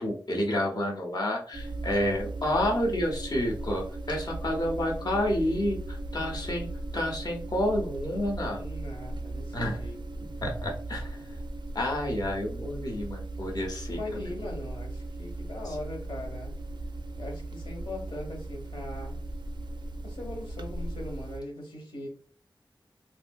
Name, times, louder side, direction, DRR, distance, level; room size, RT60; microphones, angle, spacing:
voice 1, 0.0-8.6 9.5-9.8 10.4-11.4 11.7-14.0, left 1 dB, 50° left, 0 dB, 0.7 m, -29 dB
sound 1, 1.5-21.4, right 2 dB, 60° right, 0.4 m, -37 dB
voice 2, 8.4-10.4 13.9-16.5 17.2-19.2 20.0-22.1, left 1 dB, 75° left, 0 dB, 1.1 m, -40 dB
3.4 x 2.6 x 2.2 m, 0.43 s
wide cardioid pair, 85°, 9 cm